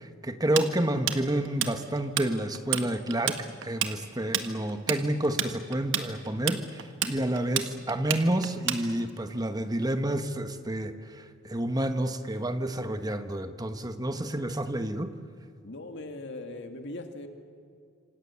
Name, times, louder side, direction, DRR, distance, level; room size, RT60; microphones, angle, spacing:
voice 1, 0.0-15.1, right 1 dB, 20° right, 9 dB, 1.2 m, -29 dB
Tools, 0.6-2.3 2.5-2.9 3.1-9.2, right 9 dB, 65° right, 1.6 m, -29 dB
voice 2, 15.6-17.3, left 2 dB, 60° left, 5 dB, 2.1 m, -39 dB
27.0 x 26.5 x 7.1 m, 2.4 s
head